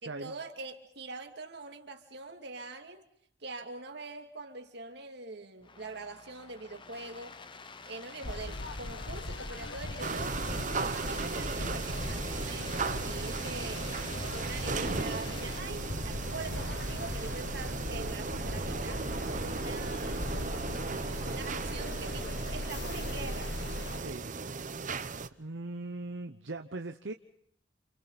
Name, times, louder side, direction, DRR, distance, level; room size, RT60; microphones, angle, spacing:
voice 1, 0.0-3.0 3.4-7.4 7.9-10.4 10.7-14.0 14.3-19.1 19.4-20.7 21.3-23.6, right 3 dB, 65° right, 5 dB, 2.6 m, -43 dB
sound 1, 5.6-15.6, left 4 dB, 25° left, 1.0 m, -48 dB
sound 2, 8.2-24.0, left 1 dB, 70° left, 1.4 m, -39 dB
sound 3, 10.0-25.3, right 4 dB, 45° right, 0.9 m, -36 dB
voice 2, 25.4-27.1, right 2 dB, 85° right, 6 dB, 0.9 m, -39 dB
29.0 x 28.0 x 4.1 m, 0.68 s
head